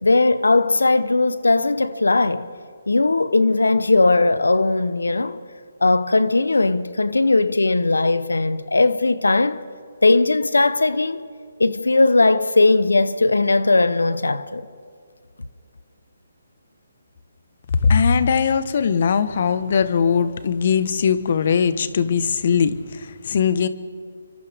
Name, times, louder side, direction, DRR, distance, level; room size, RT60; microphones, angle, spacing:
voice 1, 0.0-2.5 2.9-5.4 5.8-9.6 10.0-11.2 11.6-14.7, left 3 dB, 85° left, 0.9 m, -18 dB
voice 2, 17.8-23.7, left 6 dB, 50° left, 1.4 m, -20 dB
29.5 x 25.0 x 3.7 m
figure-of-eight pair, 145°, 0 cm